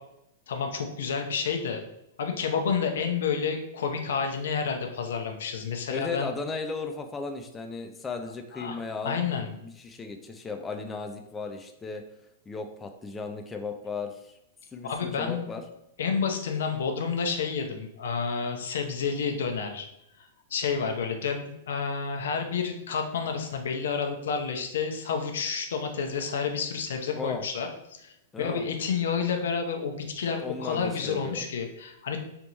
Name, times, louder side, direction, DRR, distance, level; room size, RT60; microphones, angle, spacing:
voice 1, 0.5-1.8 2.2-6.3 8.5-8.8 9.0-9.5 14.8-15.4 16.0-19.9 20.2-32.2, left 6 dB, 80° left, 4 dB, 0.8 m, -30 dB
voice 2, 5.9-12.0 12.5-14.4 14.7-15.6 27.1-27.4 28.3-28.7 30.4-31.4, left 4 dB, 15° left, 5 dB, 0.4 m, -36 dB
3.5 x 3.0 x 3.9 m, 0.81 s
hypercardioid pair, 140°, 0 cm